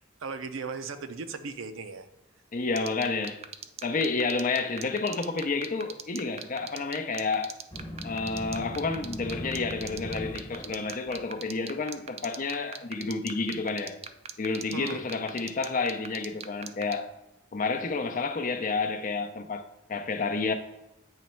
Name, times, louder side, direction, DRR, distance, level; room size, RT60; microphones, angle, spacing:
voice 1, 0.2-2.1 14.7-15.1, right 4 dB, 75° right, 0.6 m, -37 dB
voice 2, 2.5-3.4 3.8-7.5 8.0-14.0 14.4-17.1 17.5-20.5, left 4 dB, 40° left, 0.6 m, -30 dB
sound 1, 2.8-16.9, right 8 dB, 30° right, 0.3 m, -38 dB
sound 2, 7.7-11.6, equal, 25° left, 1.2 m, -40 dB
8.5 x 3.1 x 4.4 m
head